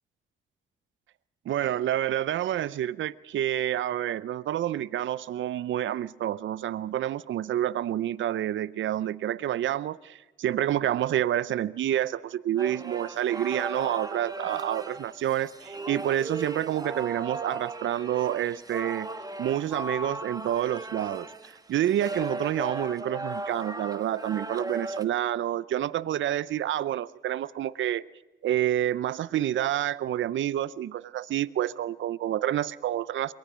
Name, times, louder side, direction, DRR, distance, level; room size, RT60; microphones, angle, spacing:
voice 1, 1.5-19.1 19.4-21.3 21.7-28.0 28.4-33.3, right 12 dB, 75° right, 18 dB, 0.6 m, -28 dB
sound 1, 12.6-25.0, right 2 dB, 20° right, 1.3 m, -37 dB
23.0 x 18.0 x 6.2 m, 1.1 s
cardioid pair, 60°, 20 cm